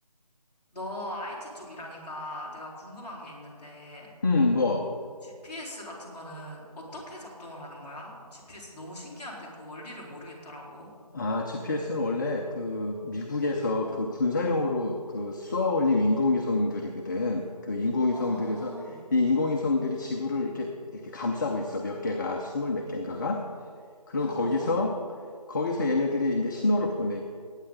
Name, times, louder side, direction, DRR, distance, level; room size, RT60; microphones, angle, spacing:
voice 1, 0.7-4.1 5.2-10.9 18.1-19.0 24.2-24.8, left 1 dB, 10° left, -11 dB, 3.1 m, -41 dB
voice 2, 4.2-4.9 11.1-18.7 19.1-23.4 24.1-24.9 25.5-27.2, left 2 dB, 30° left, 1 dB, 0.7 m, -27 dB
19.5 x 9.0 x 3.9 m, 2.1 s
figure-of-eight pair, 160°, 20 cm